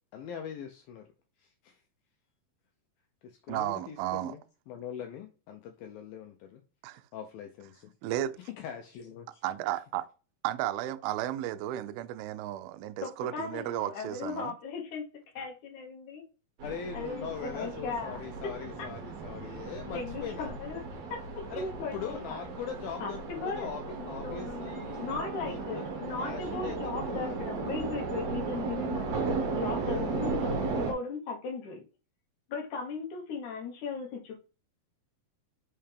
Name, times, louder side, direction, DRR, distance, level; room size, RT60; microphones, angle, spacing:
voice 1, 0.1-1.1 1.4-1.8 3.2-4.4 4.7-6.6 7.1-7.9 8.4-9.4 16.6-20.6 21.5-23.2 23.6-25.1 25.4-25.8 26.2-26.8 27.1-27.4 29.8-30.4, left 8 dB, 80° left, 2.1 m, -42 dB
voice 2, 3.5-4.4 6.8-7.0 8.0-8.4 9.4-10.1 10.4-14.6, right 13 dB, 85° right, 2.2 m, -33 dB
voice 3, 13.0-15.1 15.3-16.2 16.9-17.3 17.5-18.5 18.8-18.9 19.5-19.6 19.9-20.8 21.1-22.2 23.0-23.7 24.0-31.8 32.5-34.3, left 4 dB, 65° left, 2.1 m, -37 dB
sound 1, 16.6-30.9, right 4 dB, 65° right, 1.7 m, -36 dB
5.7 x 5.5 x 3.4 m
omnidirectional pair, 4.8 m